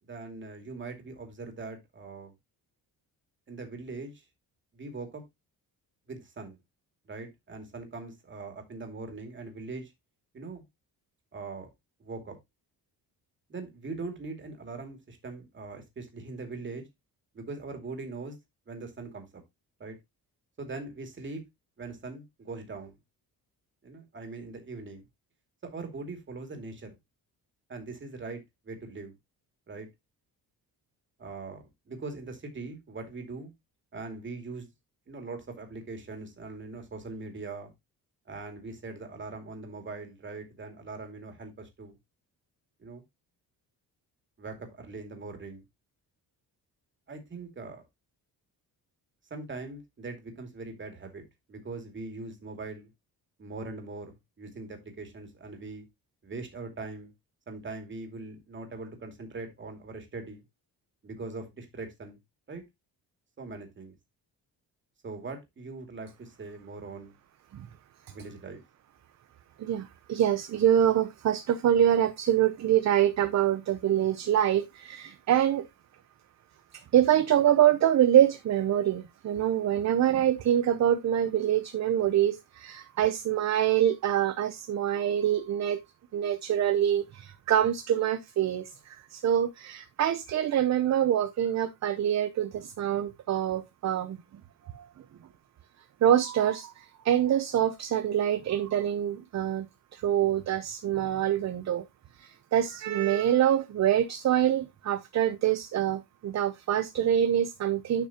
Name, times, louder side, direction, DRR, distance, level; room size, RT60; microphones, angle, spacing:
voice 1, 0.1-2.3 3.5-4.2 4.7-5.2 6.1-6.6 7.1-9.9 10.3-10.6 11.3-11.7 12.0-12.4 13.5-16.9 17.3-18.4 18.7-19.4 19.8-20.0 20.6-21.4 21.8-23.0 23.8-25.0 25.6-27.0 27.7-29.1 29.7-29.9 31.2-33.5 33.9-34.7 35.1-37.7 38.3-41.9 42.8-43.0 44.4-45.6 47.1-47.8 49.3-51.2 51.5-52.9 53.4-55.8 56.2-57.1 57.5-60.4 61.0-62.2 62.5-62.6 63.4-64.0 65.0-67.1 68.1-68.6, right 3 dB, 30° right, 2.5 m, -41 dB
voice 2, 69.6-75.7 76.7-85.8 86.1-94.2 94.7-94.9 96.0-99.7 99.9-101.8 102.2-108.1, right 10 dB, 45° right, 0.7 m, -25 dB
10.5 x 6.0 x 2.9 m
cardioid pair, 155°, 37 cm